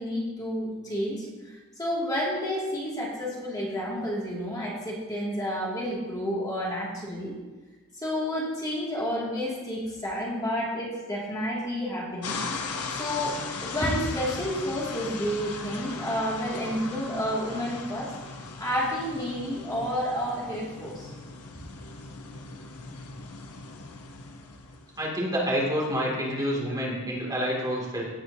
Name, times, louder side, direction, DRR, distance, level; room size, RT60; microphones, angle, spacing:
voice 1, 0.0-7.4 8.0-12.4 13.0-18.1 18.6-21.1, equal, 15° left, -6 dB, 2.4 m, -30 dB
sound 1, 12.2-25.1, left 4 dB, 80° left, 0.9 m, -38 dB
voice 2, 25.0-28.0, equal, 20° right, -4 dB, 2.5 m, -28 dB
17.5 x 7.9 x 2.8 m, 1.2 s
head